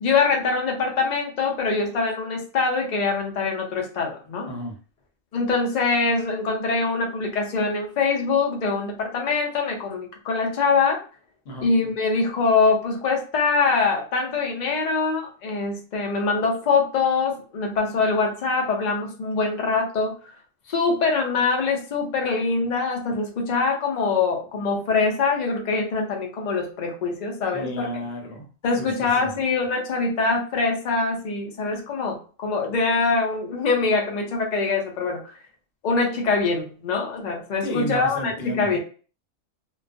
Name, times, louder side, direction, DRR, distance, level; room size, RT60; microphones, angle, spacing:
voice 1, 0.0-4.5 5.3-11.0 11.6-20.1 20.7-27.9 28.6-35.3 35.8-38.8, left 4 dB, 80° left, 2 dB, 0.4 m, -23 dB
voice 2, 4.5-4.8 11.4-11.7 27.5-28.5 28.8-29.3 37.6-38.8, equal, 55° left, 1 dB, 0.8 m, -32 dB
2.3 x 2.2 x 2.4 m, 0.38 s
omnidirectional pair, 1.4 m